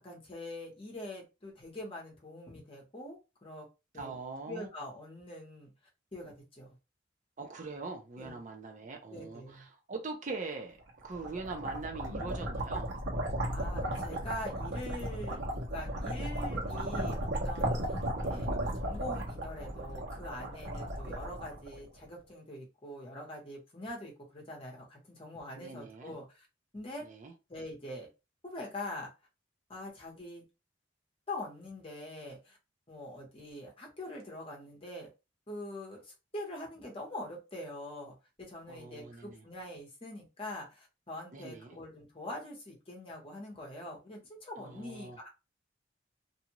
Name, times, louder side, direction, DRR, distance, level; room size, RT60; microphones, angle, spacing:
voice 1, 0.0-3.7 3.9-4.2 4.5-5.7 6.1-6.7 8.2-8.4 9.1-9.7 12.1-12.4 13.5-15.4 15.7-26.2 26.7-27.1 27.5-28.1 28.4-29.1 29.7-30.4 31.3-32.6 32.9-35.1 35.5-45.3, left 1 dB, 30° left, 1.0 m, -44 dB
voice 2, 3.9-4.7 7.4-12.9 25.5-26.1 27.0-27.3 38.7-39.4 41.3-41.8 44.5-45.2, right 3 dB, 40° right, 0.6 m, -42 dB
sound 1, 10.9-22.1, right 1 dB, 70° right, 1.1 m, -35 dB
2.7 x 2.4 x 2.9 m
head